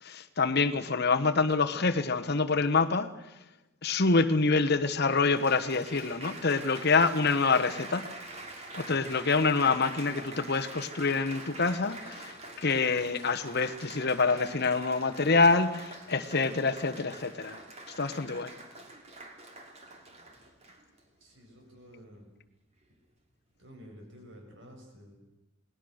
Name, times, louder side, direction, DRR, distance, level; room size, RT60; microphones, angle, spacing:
voice 1, 0.0-3.4 3.8-8.1 8.7-17.6 17.9-18.5, left 4 dB, 50° left, 1.2 m, -26 dB
Applause, 4.3-4.4 5.1-21.0 21.7-22.1, right 2 dB, 30° right, 2.9 m, -45 dB
voice 2, 21.2-22.3 23.6-25.2, equal, 60° right, 7.1 m, -51 dB
29.0 x 20.0 x 6.5 m
head